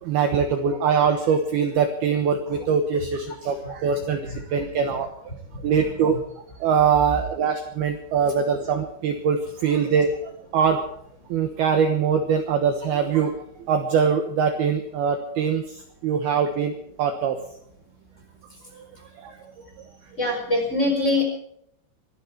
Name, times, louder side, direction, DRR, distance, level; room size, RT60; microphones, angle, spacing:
voice 1, 0.0-5.3 5.6-6.2 6.6-10.8 11.3-13.3 13.7-17.4 18.7-18.9 19.2-19.4, right 6 dB, 70° right, 5 dB, 2.6 m, -23 dB
voice 2, 20.2-21.2, left 2 dB, 15° left, 2 dB, 4.4 m, -23 dB
24.0 x 12.5 x 4.6 m, 0.70 s
omnidirectional pair, 5.6 m